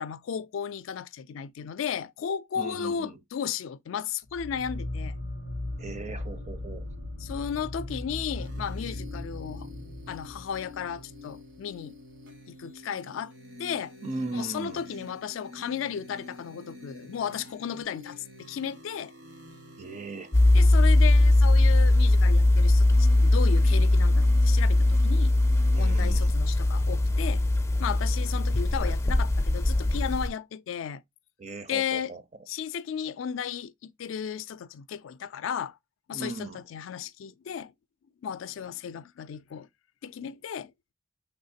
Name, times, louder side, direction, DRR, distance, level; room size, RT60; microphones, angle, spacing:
voice 1, 0.0-5.2 7.2-9.7 10.1-12.0 12.5-13.3 13.6-13.9 14.3-19.1 20.5-25.3 25.7-27.4 27.8-31.0 31.7-32.1 32.5-35.8 36.1-37.7 38.2-39.7 40.0-40.7, left 8 dB, 85° left, 0.3 m, -34 dB
voice 2, 2.6-3.2 5.8-6.9 14.0-14.8 19.8-20.3 25.7-26.3 31.4-32.2 36.1-36.6, right 3 dB, 35° right, 0.5 m, -38 dB
sound 1, 4.3-11.6, left 1 dB, 85° right, 1.7 m, -37 dB
sound 2, 8.4-26.0, left 1 dB, 65° right, 1.5 m, -48 dB
sound 3, 20.3-30.3, left 2 dB, 15° left, 0.4 m, -21 dB
5.6 x 3.5 x 2.6 m
head